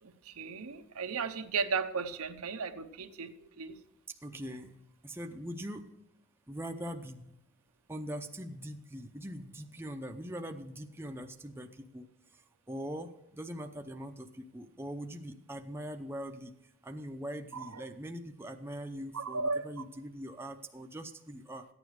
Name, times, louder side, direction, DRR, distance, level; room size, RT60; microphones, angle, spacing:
voice 1, 0.0-3.8 17.5-17.8 19.1-19.6, right 4 dB, 85° right, 8 dB, 0.9 m, -35 dB
voice 2, 4.1-4.8 5.0-5.8 6.5-7.3 7.9-12.1 12.7-16.5 16.8-21.7, equal, 10° right, 4 dB, 0.6 m, -42 dB
14.0 x 9.3 x 4.8 m, 0.84 s
head